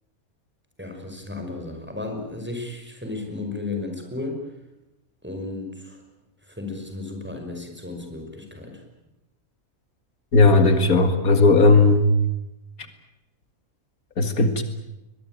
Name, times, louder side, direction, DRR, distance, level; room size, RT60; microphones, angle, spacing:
voice 1, 0.8-4.5 5.2-6.0 6.4-8.8, left 3 dB, 5° right, 3 dB, 5.4 m, -34 dB
voice 2, 10.3-12.0 14.2-14.6, left 3 dB, 75° left, 8 dB, 2.5 m, -16 dB
23.0 x 21.0 x 9.2 m, 0.95 s
omnidirectional pair, 1.5 m